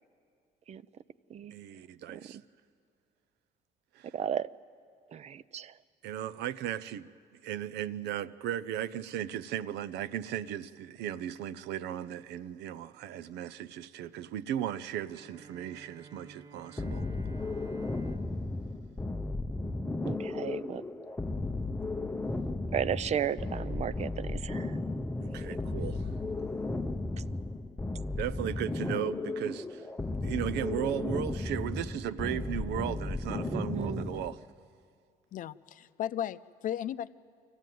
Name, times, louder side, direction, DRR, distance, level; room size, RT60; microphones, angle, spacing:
voice 1, 1.5-2.4 3.9-4.1 6.0-17.1 25.2-26.1 28.2-29.9 30.2-34.4, right 11 dB, 80° right, 16 dB, 0.6 m, -36 dB
voice 2, 2.1-2.4 4.1-4.5 5.1-5.7 20.0-20.8 22.7-24.8 33.5-34.1, right 9 dB, 40° right, 18 dB, 0.5 m, -34 dB
Bowed string instrument, 15.1-20.0, right 4 dB, 25° right, 1.4 m, -54 dB
sound 1, 16.8-34.4, left 2 dB, 10° left, 0.6 m, -35 dB
voice 3, 35.3-37.1, left 10 dB, 50° left, 14 dB, 0.6 m, -35 dB
24.5 x 15.0 x 9.3 m, 2.3 s
cardioid pair, 110°, 17 cm